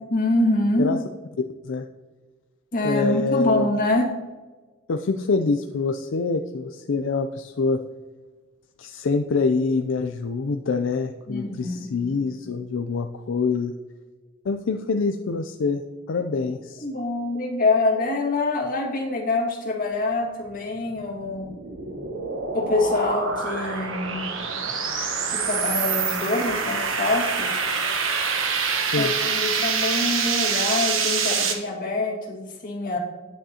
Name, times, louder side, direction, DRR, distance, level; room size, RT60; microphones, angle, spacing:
voice 1, 0.1-1.0 2.7-4.1 11.3-11.9 16.4-16.5 16.8-21.5 22.5-24.3 25.3-27.6 28.9-33.0, left 2 dB, 45° left, -1 dB, 1.9 m, -25 dB
voice 2, 2.8-3.7 4.9-7.8 8.8-13.7 14.4-15.8 16.1-16.8 28.9-29.1, left 4 dB, 70° left, 6 dB, 0.4 m, -25 dB
sound 1, 21.0-31.5, right 5 dB, 85° right, 1.2 m, -26 dB
9.2 x 8.8 x 2.8 m, 1.3 s
head